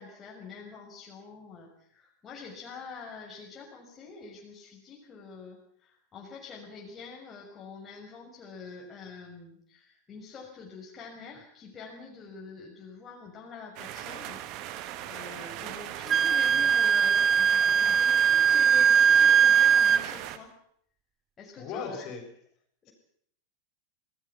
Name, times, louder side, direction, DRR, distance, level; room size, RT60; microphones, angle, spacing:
voice 1, 0.0-14.4 14.7-20.5 21.4-22.1 22.8-22.9, left 4 dB, 20° left, -2 dB, 6.3 m, -46 dB
sound 1, 13.8-20.4, right 12 dB, 40° right, 2.1 m, -39 dB
Wind instrument woodwind instrument, 16.1-20.0, right 7 dB, 25° right, 0.9 m, -20 dB
voice 2, 21.6-22.2 22.9-23.0, left 5 dB, 35° left, 3 dB, 7.2 m, -37 dB
27.5 x 19.5 x 5.9 m, 0.66 s
figure-of-eight pair, 90°, 0 cm